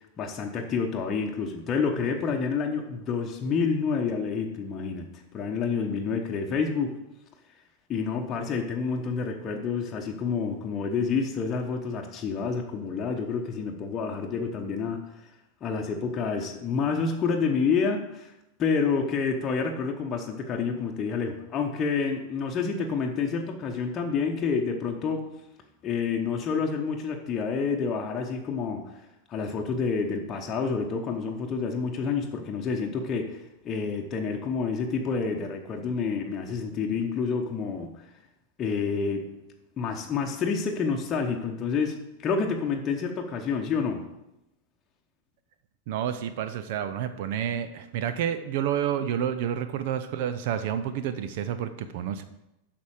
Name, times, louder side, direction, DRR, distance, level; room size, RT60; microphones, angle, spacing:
voice 1, 0.2-5.1 5.3-7.0 7.9-15.1 15.6-18.3 18.6-25.3 25.8-28.9 29.3-38.0 38.6-39.3 39.8-44.0, left 5 dB, 25° left, 1 dB, 0.9 m, -28 dB
voice 2, 45.9-52.2, right 9 dB, 50° right, 11 dB, 0.5 m, -29 dB
8.3 x 6.0 x 4.9 m, 0.89 s
figure-of-eight pair, 90°, 0 cm